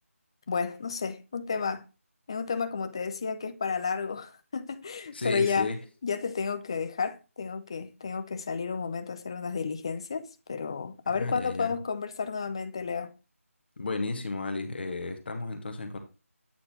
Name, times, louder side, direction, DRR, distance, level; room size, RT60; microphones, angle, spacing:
voice 1, 0.5-1.8 2.3-5.7 6.0-13.2, left 5 dB, 20° left, 0.4 m, -32 dB
voice 2, 5.1-5.8 11.1-11.7 13.8-16.0, left 3 dB, 45° left, 1.2 m, -33 dB
8.7 x 4.0 x 4.2 m
figure-of-eight pair, 160°, 8 cm